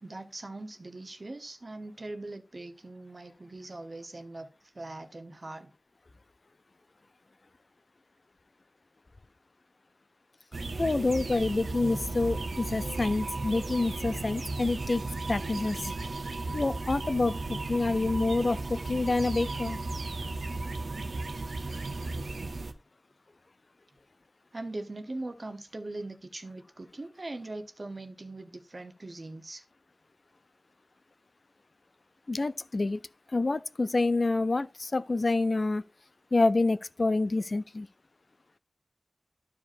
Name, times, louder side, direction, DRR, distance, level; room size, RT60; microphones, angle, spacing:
voice 1, 0.0-4.5 4.7-5.7 24.5-29.6, right 2 dB, 50° right, 0.9 m, -41 dB
sound 1, 10.5-22.7, right 3 dB, 85° right, 0.7 m, -35 dB
voice 2, 10.8-15.8 16.5-19.8 32.3-33.0 33.3-35.8 36.3-37.9, left 2 dB, 55° left, 0.4 m, -27 dB
13.0 x 5.0 x 2.6 m
wide cardioid pair, 75°, 0 cm